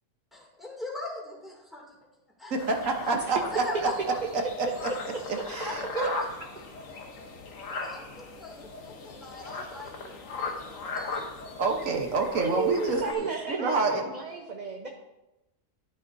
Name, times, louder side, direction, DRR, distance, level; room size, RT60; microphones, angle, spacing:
voice 1, 0.3-1.8 2.4-2.7 3.5-4.2 5.6-6.2 6.6-6.7 7.7-11.3 12.8-13.3 14.1-14.2, left 2 dB, ahead, -3 dB, 2.5 m, -41 dB
voice 2, 2.5-3.9 4.6-4.7 5.3-6.2 11.6-14.1, right 3 dB, 70° right, 3 dB, 1.4 m, -28 dB
sound 1, 2.6-13.1, left 4 dB, 70° left, 1.5 m, -38 dB
voice 3, 12.4-14.9, right 5 dB, 35° right, 1 dB, 0.9 m, -32 dB
12.0 x 10.0 x 2.7 m, 0.97 s
omnidirectional pair, 1.4 m